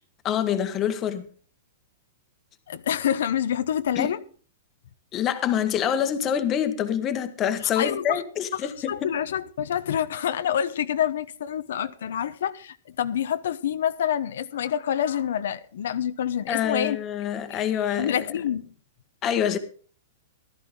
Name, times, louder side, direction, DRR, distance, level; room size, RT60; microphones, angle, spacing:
voice 1, 0.2-1.3 3.9-4.1 5.1-9.1 16.5-18.3 19.2-19.6, left 9 dB, 20° left, 1.3 m, -26 dB
voice 2, 2.7-4.2 7.6-8.2 8.5-17.0 17.5-18.7, left 9 dB, 75° left, 0.9 m, -27 dB
15.5 x 13.0 x 3.8 m
supercardioid pair, 165°, 0 cm